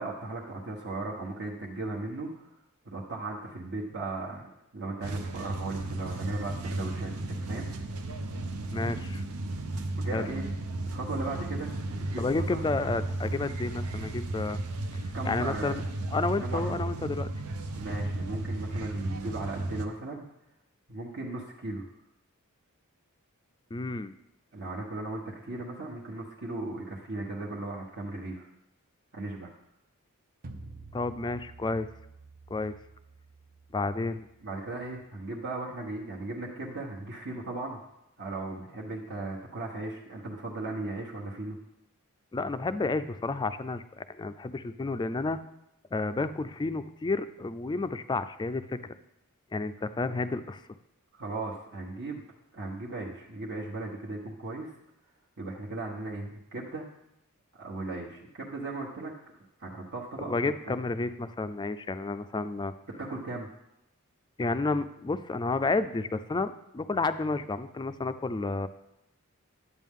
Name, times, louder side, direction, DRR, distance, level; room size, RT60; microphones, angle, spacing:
voice 1, 0.0-2.5 2.8-7.7 9.9-10.4 10.9-12.6 15.1-15.8 16.4-16.7 17.8-20.3 20.9-21.9 24.5-28.5 29.1-29.5 34.4-37.8 38.2-41.6 51.1-52.2 52.5-54.7 55.4-56.8 57.5-59.1 59.6-60.4 60.7-60.8 63.0-63.5, right 2 dB, 60° right, -4 dB, 1.2 m, -37 dB
sound 1, 5.0-19.9, right 2 dB, 90° right, 0.8 m, -34 dB
voice 2, 8.7-9.2 10.1-10.2 12.2-14.6 14.9-15.8 16.1-17.3 23.7-24.1 30.9-31.9 32.5-32.7 33.7-34.3 42.3-45.4 45.9-48.9 49.5-50.6 60.2-62.7 64.4-68.7, left 3 dB, 20° left, 12 dB, 0.3 m, -31 dB
sound 2, 30.4-35.5, right 2 dB, 45° right, 0.7 m, -50 dB
11.0 x 8.4 x 3.7 m, 0.85 s
head